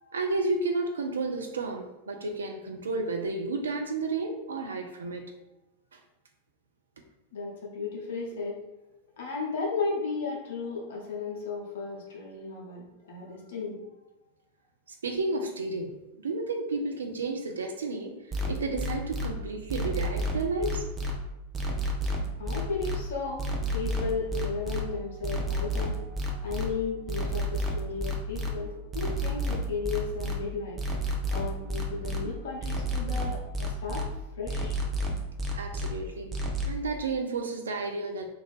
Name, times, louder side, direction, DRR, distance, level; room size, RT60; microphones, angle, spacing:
voice 1, 0.1-5.2 5.9-6.0 14.9-16.0 16.2-18.2 18.5-20.9 35.5-36.4 36.6-38.3, right 3 dB, 70° right, 4 dB, 0.3 m, -32 dB
voice 2, 7.3-8.6 9.1-13.9 22.4-30.8 31.3-34.0 34.4-34.8, left 4 dB, 60° left, -3 dB, 0.8 m, -34 dB
sound 1, 18.3-19.3 19.7-21.1 21.5-23.0 23.4-24.8 25.2-26.6 27.1-28.5 28.9-30.3 30.8-32.2 32.6-34.0 34.5-35.9 36.3-36.7, right 1 dB, 20° right, 0.5 m, -30 dB
2.5 x 2.5 x 3.3 m, 1.0 s
figure-of-eight pair, 90°, 0 cm